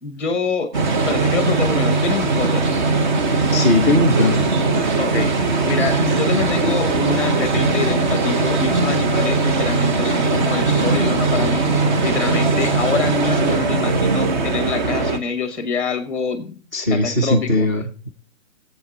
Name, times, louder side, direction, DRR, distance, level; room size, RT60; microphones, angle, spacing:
voice 1, 0.0-2.7 5.0-16.6 16.9-17.7, left 4 dB, 5° left, 8 dB, 1.1 m, -26 dB
sound 1, 0.7-15.2, right 3 dB, 35° right, 1.1 m, -19 dB
voice 2, 3.5-4.5 16.7-18.1, left 2 dB, 15° right, -1 dB, 0.6 m, -19 dB
18.0 x 8.0 x 4.2 m, 0.40 s
hypercardioid pair, 165°, 40 cm